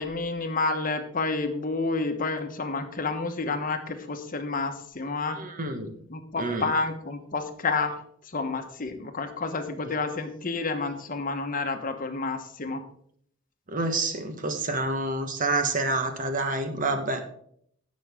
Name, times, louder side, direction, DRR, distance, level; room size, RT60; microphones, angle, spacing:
voice 1, 0.0-5.4 6.1-8.0 8.3-12.8, left 3 dB, 45° left, 7 dB, 1.1 m, -29 dB
voice 2, 5.4-5.9 6.4-6.7 13.7-17.2, right 2 dB, 45° right, 7 dB, 1.3 m, -28 dB
17.0 x 6.4 x 3.6 m, 0.65 s
head